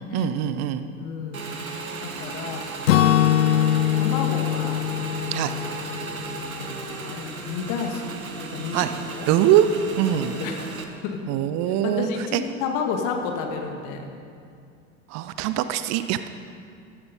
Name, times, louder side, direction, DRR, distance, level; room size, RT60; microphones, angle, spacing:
voice 1, 0.1-0.9 5.3-5.5 8.7-8.9 9.3-9.7 10.0-10.3 11.3-12.4 15.1-16.3, right 12 dB, 40° right, 11 dB, 0.7 m, -22 dB
voice 2, 1.0-1.5 2.0-2.7 3.4-4.8 6.6-6.8 7.0-8.8 9.1-9.3 10.1-10.7 11.0-11.2 11.8-14.0, left 5 dB, 50° left, 3 dB, 2.1 m, -31 dB
Motorcycle / Engine, 1.3-10.8, right 4 dB, 80° right, 1.3 m, -35 dB
Acoustic guitar / Strum, 2.9-6.8, left 11 dB, 70° left, 0.6 m, -22 dB
15.0 x 13.0 x 5.4 m, 2.4 s
figure-of-eight pair, 75°, 41 cm